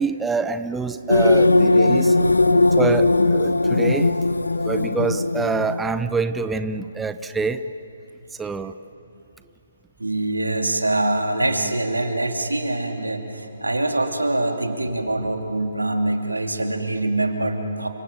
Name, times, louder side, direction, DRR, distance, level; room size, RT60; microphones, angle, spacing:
voice 1, 0.0-2.2 2.8-4.2 4.6-7.6 8.4-8.7, right 4 dB, 5° right, 11 dB, 0.6 m, -26 dB
sound 1, 1.1-6.0, left 2 dB, 80° left, 0.9 m, -18 dB
voice 2, 10.0-17.9, right 2 dB, 85° right, 4 dB, 2.9 m, -24 dB
29.5 x 26.0 x 7.7 m, 2.8 s
figure-of-eight pair, 135°, 0 cm